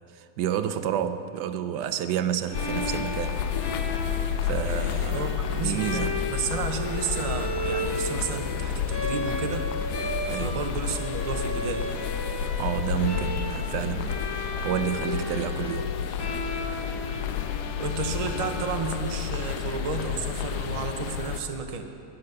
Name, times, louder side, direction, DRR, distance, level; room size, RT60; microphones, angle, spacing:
voice 1, 0.1-3.4 4.4-6.2 10.3-10.6 12.6-16.0, right 10 dB, 80° right, 10 dB, 1.2 m, -30 dB
sound 1, 2.5-21.4, left 9 dB, 75° left, 1.2 m, -31 dB
Bowed string instrument, 2.5-19.4, left 1 dB, 25° left, 0.5 m, -35 dB
voice 2, 5.1-9.7 10.3-11.9 17.8-21.9, right 5 dB, 30° right, 4 dB, 0.7 m, -32 dB
13.5 x 9.8 x 6.7 m, 2.7 s
omnidirectional pair, 1.8 m